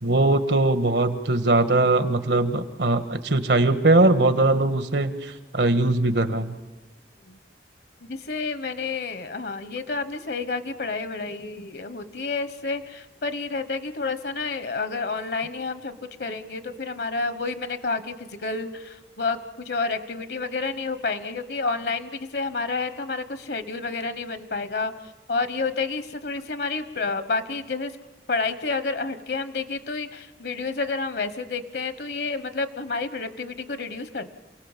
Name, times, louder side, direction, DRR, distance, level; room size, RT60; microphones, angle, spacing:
voice 1, 0.0-6.6, right 2 dB, 80° right, 9 dB, 1.6 m, -21 dB
voice 2, 8.1-24.9 25.3-27.9 28.3-34.3, left 4 dB, 65° left, 11 dB, 1.1 m, -30 dB
28.0 x 18.5 x 7.3 m, 1.2 s
head